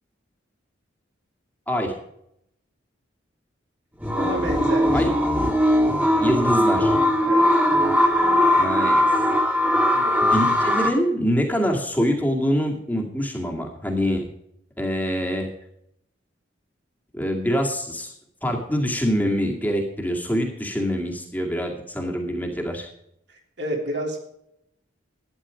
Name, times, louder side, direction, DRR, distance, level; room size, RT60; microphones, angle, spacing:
sound 1, 4.0-10.9, left 1 dB, 10° right, 1.8 m, -19 dB
voice 1, 4.2-5.0 7.2-7.6 9.9-10.4 23.3-24.2, right 1 dB, 60° right, 1 dB, 3.2 m, -31 dB
voice 2, 6.2-6.9 8.5-9.0 10.2-14.3 14.8-15.5 17.1-18.1 18.4-22.9, equal, 10° left, 0 dB, 2.1 m, -25 dB
12.5 x 10.0 x 5.1 m, 0.76 s
head